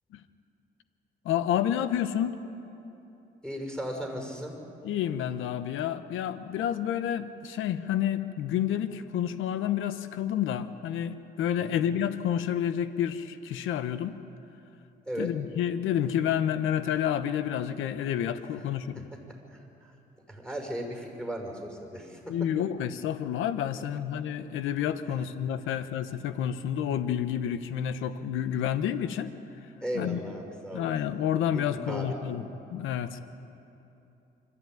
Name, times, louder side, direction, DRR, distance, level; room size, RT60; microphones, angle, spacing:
voice 1, 1.2-2.4 4.8-14.1 15.2-19.0 22.3-29.3 29.9-30.2 30.7-33.2, left 10 dB, 85° left, 11 dB, 1.0 m, -29 dB
voice 2, 3.4-4.6 11.6-11.8 15.1-15.3 18.9-19.4 19.8-19.9 20.3-22.3 23.9-24.0 29.8-30.9 31.5-32.2, equal, 5° left, 2 dB, 5.8 m, -36 dB
25.0 x 14.0 x 9.3 m, 3.0 s
cardioid pair, 90°, 20 cm